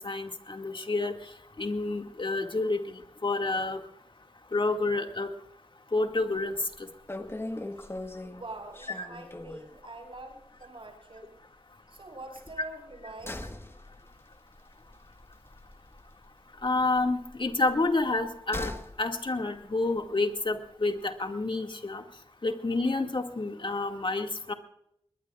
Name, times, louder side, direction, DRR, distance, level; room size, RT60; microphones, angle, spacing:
voice 1, 0.0-1.3 1.6-3.8 4.5-5.3 5.9-6.7 9.0-9.1 16.6-18.7 19.0-22.0 22.4-24.5, left 2 dB, 55° left, 4 dB, 2.2 m, -29 dB
sound 1, 6.2-6.5 6.7-6.8 7.1-9.8 10.2-10.3 10.6-10.7 12.4-16.3 16.6-19.0 19.3-19.4, left 1 dB, 25° left, 1.5 m, -40 dB
voice 2, 8.3-11.3 11.9-13.5, right 2 dB, 60° right, 4 dB, 5.9 m, -45 dB
22.0 x 21.0 x 2.5 m, 0.74 s
cardioid pair, 50°, 10 cm